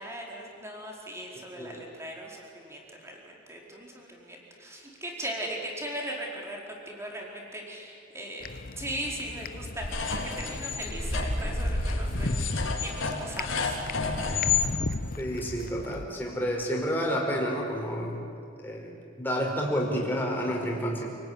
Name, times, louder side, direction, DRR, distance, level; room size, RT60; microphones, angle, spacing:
voice 1, 0.0-8.5 8.8-14.0, right 1 dB, 15° right, -1 dB, 4.5 m, -39 dB
sound 1, 8.4-16.1, left 2 dB, 45° left, 0.8 m, -36 dB
sound 2, 9.8-14.7, left 4 dB, 80° left, 4.1 m, -29 dB
voice 2, 15.2-18.1 18.6-18.9 19.2-21.1, equal, 10° left, -1 dB, 4.9 m, -29 dB
29.0 x 19.0 x 9.7 m, 2.5 s
head